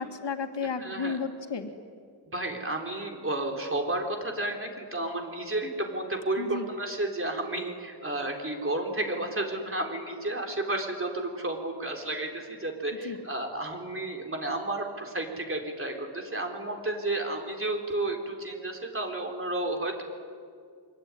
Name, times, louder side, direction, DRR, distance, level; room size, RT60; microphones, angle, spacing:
voice 1, 0.0-1.7 6.4-6.7 12.9-13.2, left 5 dB, 75° left, 5 dB, 2.2 m, -33 dB
voice 2, 0.8-1.1 2.3-20.0, right 2 dB, 30° right, 2 dB, 4.0 m, -32 dB
24.5 x 22.5 x 9.9 m, 2.2 s
wide cardioid pair, 105°, 43 cm